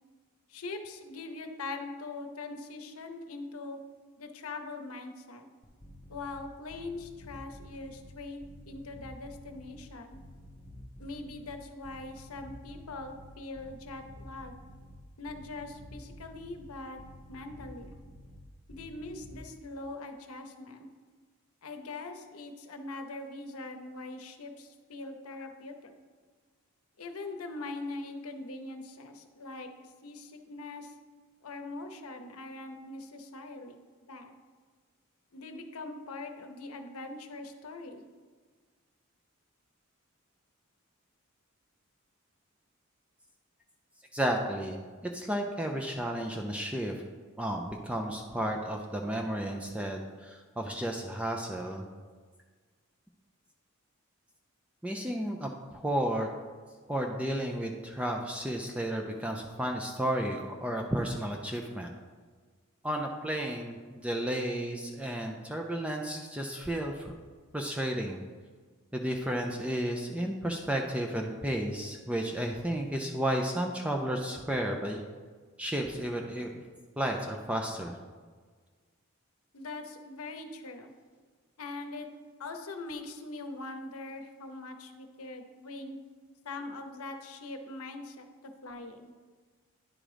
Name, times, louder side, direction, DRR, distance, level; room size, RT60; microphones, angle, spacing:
voice 1, 0.5-3.8 4.2-5.5 6.1-10.2 11.0-14.6 15.2-17.0 17.3-18.0 18.7-20.9 21.6-25.9 27.0-29.7 30.0-30.9 31.4-33.8 34.1-34.3 35.3-38.0 79.5-80.9 81.6-82.1 82.4-86.0 86.4-88.3 88.6-89.1, left 2 dB, 85° left, 6 dB, 0.8 m, -42 dB
sound 1, 5.6-6.4 6.7-8.1 8.4-9.8 10.1-11.5 11.8-13.2 13.6-14.9 15.3-16.7 17.0-18.4 18.7-19.4, equal, 15° left, 1.0 m, -50 dB
voice 2, 44.1-44.8 45.1-46.9 47.4-51.9 54.8-56.3 56.9-61.9 62.8-67.1 67.5-68.2 68.9-75.0 75.6-76.6 77.0-78.0, right 1 dB, 5° right, 2 dB, 0.4 m, -32 dB
9.9 x 3.7 x 5.0 m, 1.5 s
head